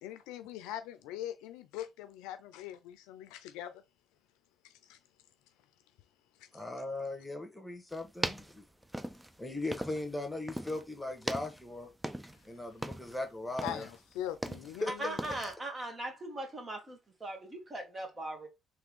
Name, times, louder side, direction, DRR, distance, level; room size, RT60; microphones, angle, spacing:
voice 1, 0.0-3.8 4.6-5.0 6.4-6.5 13.6-15.2, left 11 dB, 85° left, 0.5 m, -42 dB
voice 2, 6.5-8.6 9.4-11.9 12.4-13.8 14.8-14.9, left 2 dB, 10° left, 1.6 m, -38 dB
sound 1, 7.9-10.2 10.5-10.9 11.2-12.5 12.7-13.2 13.6-14.8 15.2-15.5, right 1 dB, 10° right, 0.6 m, -39 dB
voice 3, 14.9-18.5, right 1 dB, 35° right, 1.9 m, -39 dB
3.5 x 3.4 x 3.6 m
supercardioid pair, 65°, 0 cm